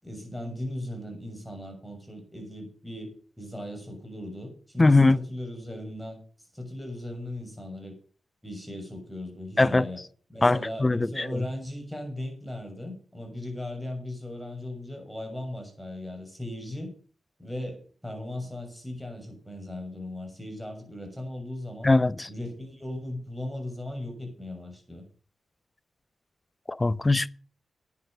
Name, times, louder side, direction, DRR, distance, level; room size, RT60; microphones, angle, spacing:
voice 1, 0.0-6.2 6.5-8.0 8.4-10.0 10.3-16.9 17.4-21.9 22.2-25.1, left 1 dB, ahead, 6.5 m, -37 dB
voice 2, 4.8-5.2 9.6-9.9 10.4-11.3 21.8-22.3 26.8-27.3, left 2 dB, 25° left, 0.6 m, -21 dB
10.5 x 9.8 x 6.7 m
cardioid pair, 60°, 0 cm